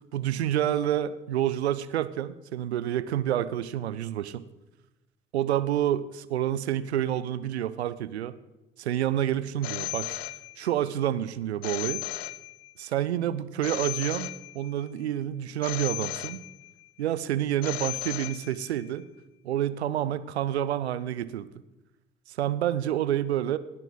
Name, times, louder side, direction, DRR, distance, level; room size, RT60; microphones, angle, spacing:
voice 1, 0.1-4.4 5.3-8.3 8.8-10.2 10.6-12.0 12.8-16.4 17.0-19.0 19.4-21.5 22.3-23.6, right 11 dB, 80° right, 15 dB, 0.5 m, -28 dB
Telephone, 9.6-10.9 11.6-12.9 13.6-14.9 15.6-16.9 17.6-18.9, left 18 dB, 65° left, 0.5 m, -36 dB
18.5 x 9.0 x 4.0 m, 1.0 s
figure-of-eight pair, 45°, 32 cm